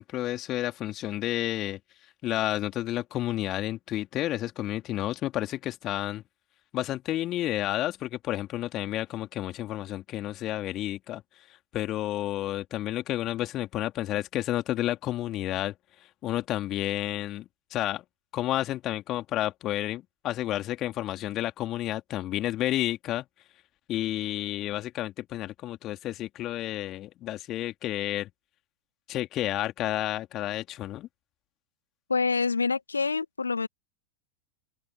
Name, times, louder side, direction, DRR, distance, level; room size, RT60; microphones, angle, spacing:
voice 1, 0.0-1.8 2.2-6.2 6.7-11.2 11.7-15.7 16.2-18.0 18.3-23.2 23.9-28.3 29.1-31.1, left 14 dB, 35° left, 3.1 m, -31 dB
voice 2, 32.1-33.7, left 4 dB, 75° left, 1.9 m, -26 dB
open air
figure-of-eight pair, 90°, 0 cm